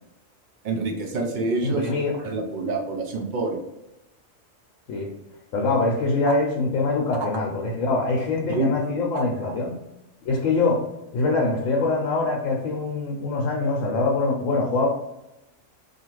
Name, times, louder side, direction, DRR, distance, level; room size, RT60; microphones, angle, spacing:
voice 1, 0.6-3.6 7.2-7.3 8.5-8.7 9.1-9.6, right 3 dB, 60° right, 2 dB, 0.5 m, -28 dB
voice 2, 1.6-2.2 4.9-5.1 5.5-9.7 10.2-10.8 11.1-14.9, left 3 dB, 80° left, -2 dB, 1.0 m, -24 dB
2.7 x 2.4 x 3.0 m, 0.91 s
omnidirectional pair, 1.4 m